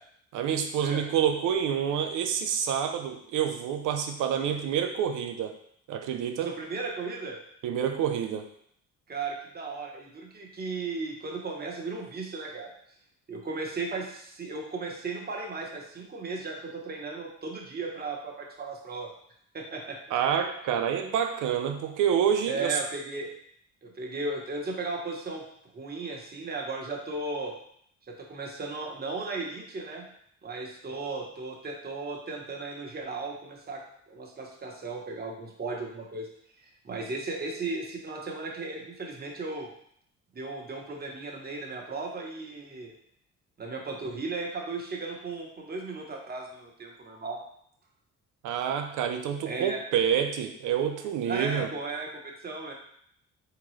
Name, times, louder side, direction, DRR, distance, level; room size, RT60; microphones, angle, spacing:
voice 1, 0.3-5.5 5.9-6.5 7.6-8.5 20.1-22.8 48.4-51.7, right 8 dB, 85° right, 6 dB, 0.5 m, -28 dB
voice 2, 6.4-7.4 9.1-12.7 13.3-19.1 19.5-20.2 22.5-23.3 23.8-25.4 25.7-27.5 28.1-30.1 30.4-33.8 34.1-36.3 36.8-39.7 40.3-42.9 43.6-47.4 49.5-49.8 51.2-52.7, right 3 dB, 30° right, 0 dB, 0.9 m, -36 dB
3.7 x 2.9 x 3.1 m, 0.67 s
cardioid pair, 90°, 30 cm